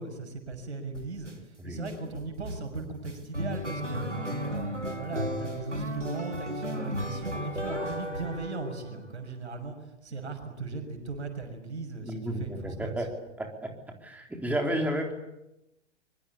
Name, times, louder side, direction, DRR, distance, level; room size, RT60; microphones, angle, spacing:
voice 1, 0.0-13.1, right 3 dB, 65° right, 7 dB, 6.4 m, -38 dB
sound 1, 0.9-1.3 1.8-9.0, equal, 90° right, 3.0 m, -34 dB
voice 2, 12.0-13.7 14.0-15.1, right 1 dB, 5° right, 2 dB, 3.8 m, -32 dB
25.0 x 24.0 x 8.7 m, 0.89 s
figure-of-eight pair, 105°, 35 cm